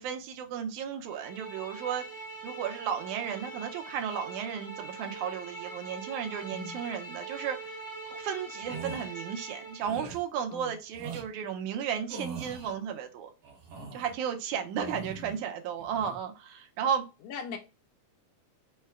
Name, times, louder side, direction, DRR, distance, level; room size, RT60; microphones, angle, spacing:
voice 1, 0.0-2.0 2.4-7.8 8.1-13.3 13.9-17.0, right 8 dB, 80° right, 2.0 m, -34 dB
sound 1, 1.0-9.9, right 3 dB, 20° right, 0.8 m, -43 dB
voice 2, 6.5-6.8 10.5-10.8 14.8-15.1 17.2-17.6, left 6 dB, 80° left, 1.9 m, -40 dB
sound 2, 8.6-9.1 9.8-10.2 10.9-11.3 12.1-12.7 13.4-14.1 14.7-15.4 15.8-16.2, right 4 dB, 60° right, 1.8 m, -42 dB
5.6 x 2.2 x 3.5 m
omnidirectional pair, 3.7 m